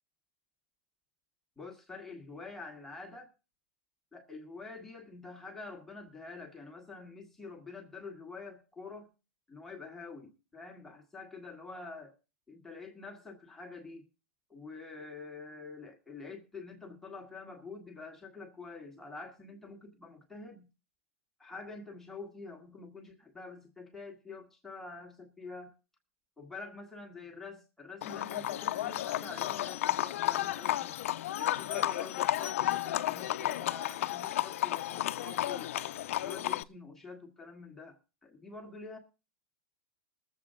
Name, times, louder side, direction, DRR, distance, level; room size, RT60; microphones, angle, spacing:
voice 1, 1.6-3.3 4.1-9.1 9.5-12.2 12.5-14.0 14.5-20.7 21.4-25.7 26.4-30.9 31.4-35.7 36.2-39.0, left 3 dB, 5° left, 1.6 m, -47 dB
Livestock farm animals working animals, 28.0-36.6, left 13 dB, 75° left, 0.5 m, -32 dB
21.0 x 7.4 x 3.7 m
supercardioid pair, 170°, 7 cm